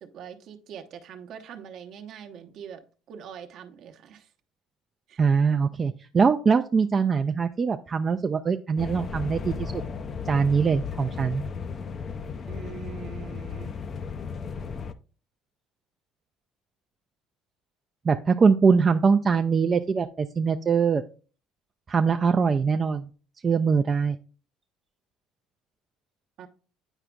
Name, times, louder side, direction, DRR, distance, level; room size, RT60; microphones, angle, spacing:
voice 1, 0.0-2.8 3.1-4.3 5.1-5.2 12.5-13.8 26.4-26.5, right 8 dB, 60° right, 5 dB, 0.8 m, -43 dB
voice 2, 5.2-9.8 10.3-11.4 18.1-21.0 21.9-23.1 23.4-24.2, right 5 dB, 35° right, 6 dB, 0.3 m, -22 dB
sound 1, 8.8-14.9, left 5 dB, 40° left, 0.4 m, -35 dB
9.0 x 4.9 x 2.3 m, 0.38 s
hypercardioid pair, 70°, 0 cm